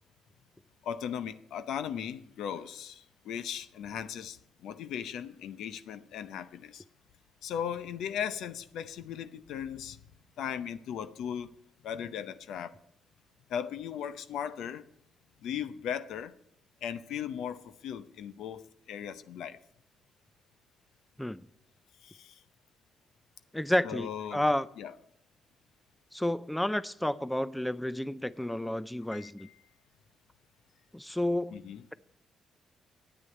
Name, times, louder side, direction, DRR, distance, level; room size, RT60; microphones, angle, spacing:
voice 1, 0.8-6.8 7.4-10.0 10.4-11.5 11.8-12.7 13.5-14.8 15.4-16.3 16.8-19.6 22.0-22.4 23.8-24.4 24.8-24.9 29.1-29.5 31.5-31.8, left 8 dB, 80° left, 13 dB, 0.7 m, -37 dB
voice 2, 23.5-24.7 26.1-29.5 30.9-31.9, left 1 dB, 5° left, 17 dB, 0.4 m, -31 dB
9.7 x 9.0 x 9.5 m, 0.78 s
cardioid pair, 90°, 0 cm